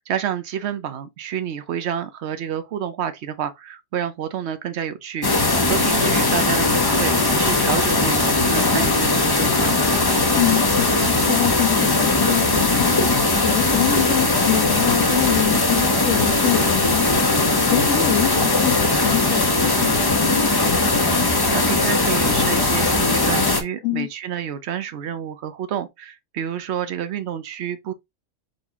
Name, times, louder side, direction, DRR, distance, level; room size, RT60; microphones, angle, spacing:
voice 1, 0.0-9.8 21.5-27.9, right 9 dB, 60° right, 0.8 m, -29 dB
sound 1, 5.2-23.6, left 2 dB, 30° left, 0.4 m, -19 dB
voice 2, 10.3-17.1 17.7-20.5 23.8-24.1, left 13 dB, 65° left, 1.0 m, -25 dB
4.1 x 3.5 x 2.8 m
omnidirectional pair, 1.4 m